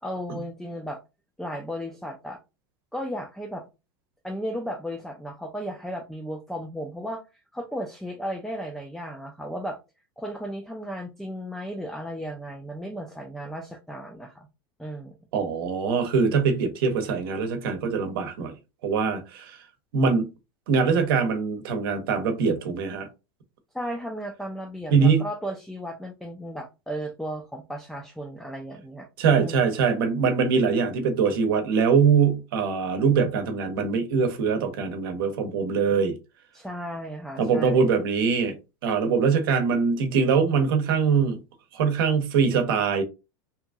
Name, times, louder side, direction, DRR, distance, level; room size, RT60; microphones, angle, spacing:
voice 1, 0.0-1.0 1.4-2.4 2.9-3.6 4.2-7.2 7.5-9.8 10.2-14.5 14.8-15.2 23.7-29.1 29.4-29.6 36.5-37.9, equal, ahead, 0.4 m, -35 dB
voice 2, 15.3-18.5 18.8-19.6 19.9-20.3 20.7-23.1 24.9-25.2 29.2-36.2 37.4-38.5 38.8-41.4 41.7-43.0, right 5 dB, 75° right, 0.8 m, -23 dB
2.9 x 2.5 x 2.3 m
supercardioid pair, 125°, 12 cm